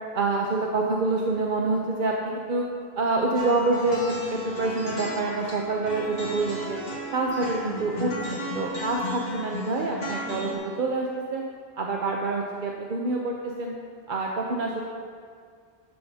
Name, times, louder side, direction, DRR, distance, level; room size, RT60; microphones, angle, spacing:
voice 1, 0.1-2.6 3.0-6.8 7.1-11.4 11.8-13.7 14.1-14.8, right 3 dB, 55° right, 0 dB, 0.9 m, -27 dB
sound 1, 3.3-10.5, left 1 dB, 55° left, 1.9 m, -34 dB
13.0 x 10.0 x 2.8 m, 2.1 s
omnidirectional pair, 1.1 m